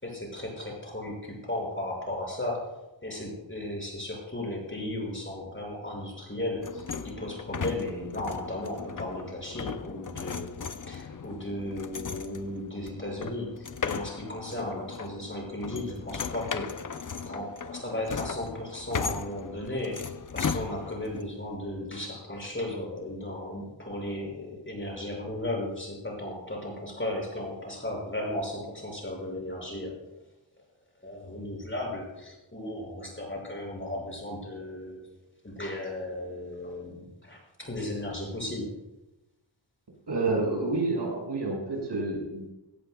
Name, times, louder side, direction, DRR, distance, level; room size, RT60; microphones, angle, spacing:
voice 1, 0.0-10.6 10.9-16.8 17.2-30.0 31.0-35.0 35.4-38.7, left 1 dB, 25° left, -1 dB, 6.2 m, -35 dB
sound 1, 6.6-21.2, left 6 dB, 45° left, 0.7 m, -37 dB
voice 2, 40.1-42.5, right 3 dB, 65° right, -2 dB, 6.2 m, -29 dB
21.0 x 17.5 x 2.3 m, 0.98 s
wide cardioid pair, 90°, 46 cm